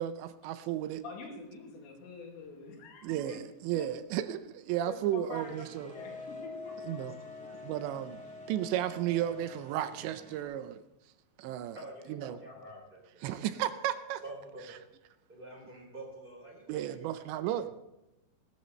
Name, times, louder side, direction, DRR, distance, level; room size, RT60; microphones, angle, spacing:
voice 1, 0.0-1.0 3.0-5.9 6.8-7.1 7.6-8.2 8.5-10.8 11.4-11.8 12.1-12.4 13.2-14.2 16.7-17.7, right 12 dB, 80° right, 11 dB, 2.8 m, -33 dB
voice 2, 1.0-3.4 3.7-3.9 4.9-7.7, left 4 dB, 75° left, 1 dB, 4.3 m, -46 dB
sound 1, 5.3-10.4, left 1 dB, 5° left, 0.9 m, -54 dB
Wind instrument woodwind instrument, 5.9-9.6, left 4 dB, 60° left, 8.2 m, -46 dB
voice 3, 11.7-13.3 14.2-14.8 15.3-17.7, right 1 dB, 10° right, 0 dB, 3.3 m, -48 dB
19.5 x 12.5 x 3.2 m, 0.91 s
omnidirectional pair, 5.2 m